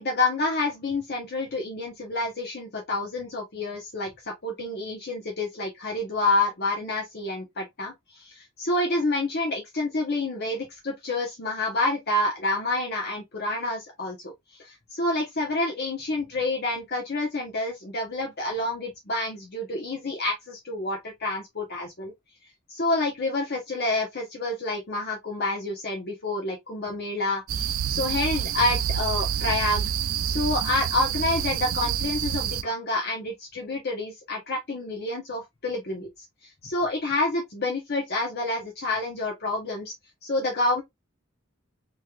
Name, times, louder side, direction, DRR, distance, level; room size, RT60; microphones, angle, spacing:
voice 1, 0.0-14.3 14.6-22.1 22.7-29.8 30.2-36.1 36.6-39.9 40.2-40.8, left 2 dB, 50° left, 0.9 m, -28 dB
sound 1, 27.5-32.6, right 9 dB, 80° right, 0.4 m, -28 dB
3.2 x 3.1 x 2.3 m
head